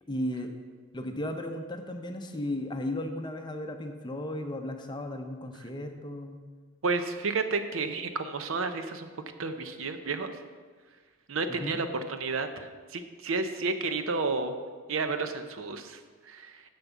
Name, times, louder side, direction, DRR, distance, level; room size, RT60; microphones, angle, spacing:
voice 1, 0.1-0.5 0.9-6.4 11.5-11.8, left 1 dB, 20° left, 5 dB, 0.6 m, -35 dB
voice 2, 6.8-9.1 9.4-10.4 11.3-14.5 14.9-16.7, right 4 dB, 65° right, 9 dB, 0.6 m, -31 dB
7.2 x 5.3 x 7.1 m, 1.5 s
head